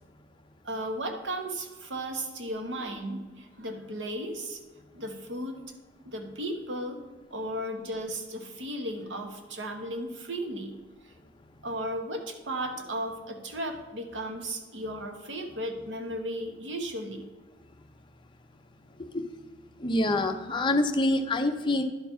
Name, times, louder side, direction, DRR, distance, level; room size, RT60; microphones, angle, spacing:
voice 1, 0.6-4.6 4.9-5.6 6.0-7.0 7.3-10.7 11.6-17.3, right 1 dB, 80° right, 4 dB, 1.2 m, -35 dB
voice 2, 19.8-21.8, left 2 dB, 25° left, 5 dB, 0.7 m, -26 dB
10.5 x 4.5 x 5.6 m, 1.3 s
head